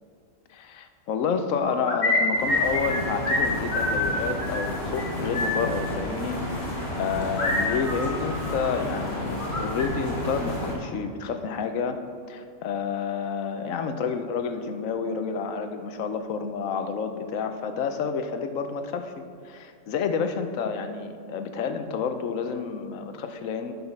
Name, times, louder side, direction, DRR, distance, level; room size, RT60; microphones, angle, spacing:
voice 1, 0.5-12.0 12.3-23.7, left 6 dB, 80° left, 8 dB, 1.1 m, -30 dB
sound 1, 1.6-3.0 3.2-3.4 3.7-4.6 5.0-5.1 5.3-5.6 7.4-8.8 9.1-9.8, left 2 dB, 55° left, 1.7 m, -26 dB
sound 2, 2.3-10.7, left 1 dB, 35° left, 2.0 m, -31 dB
10.5 x 5.5 x 5.9 m, 2.4 s
omnidirectional pair, 1.4 m